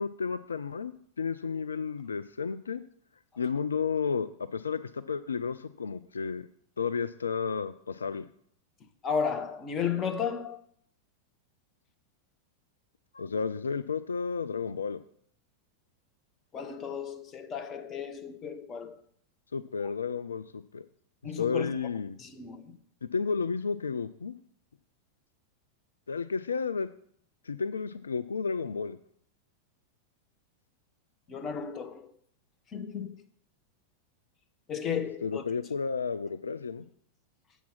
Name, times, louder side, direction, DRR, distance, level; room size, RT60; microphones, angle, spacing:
voice 1, 0.0-2.8 3.4-6.5 6.8-8.2 13.1-15.0 19.5-20.9 21.4-22.2 23.1-24.3 26.1-26.9 27.5-29.0 35.2-36.8, left 5 dB, 75° left, 0.3 m, -32 dB
voice 2, 9.0-10.6 16.5-19.0 21.2-21.7 22.2-22.8 31.3-32.1 32.7-33.1 34.7-35.4, left 7 dB, 25° left, 0.9 m, -33 dB
7.2 x 7.1 x 5.9 m
figure-of-eight pair, 90°, 0 cm